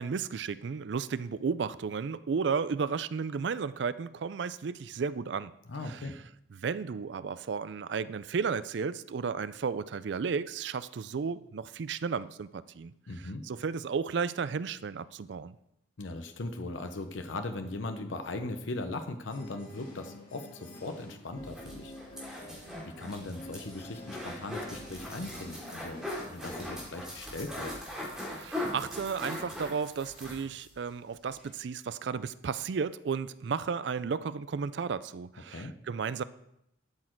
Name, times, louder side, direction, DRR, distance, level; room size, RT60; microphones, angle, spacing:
voice 1, 0.0-5.5 5.9-6.1 6.5-12.9 13.4-15.5 28.4-36.2, right 5 dB, 65° right, 16 dB, 0.4 m, -33 dB
voice 2, 5.7-6.1 13.1-13.4 16.0-21.9 22.2-22.6 23.0-27.7 35.5-35.8, left 2 dB, 80° left, 7 dB, 0.8 m, -39 dB
sound 1, 19.3-26.9, left 1 dB, 45° left, 2.7 m, -48 dB
sound 2, 21.4-30.7 31.0-31.1 31.4-31.5, left 1 dB, 5° right, 3.1 m, -40 dB
12.5 x 6.4 x 4.5 m, 0.78 s
head